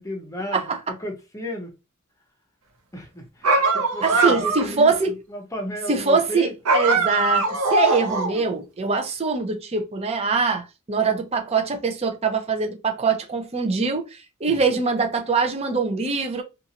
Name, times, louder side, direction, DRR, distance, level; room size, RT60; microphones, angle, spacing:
voice 1, 0.0-1.7 2.9-6.5 7.0-7.1 14.5-14.8, left 1 dB, 15° left, 0.7 m, -34 dB
sound 1, 3.4-4.8 6.6-8.4, right 3 dB, 80° right, 0.7 m, -21 dB
voice 2, 4.0-5.1 5.9-16.4, right 4 dB, 30° right, 0.5 m, -23 dB
2.6 x 2.4 x 2.8 m
head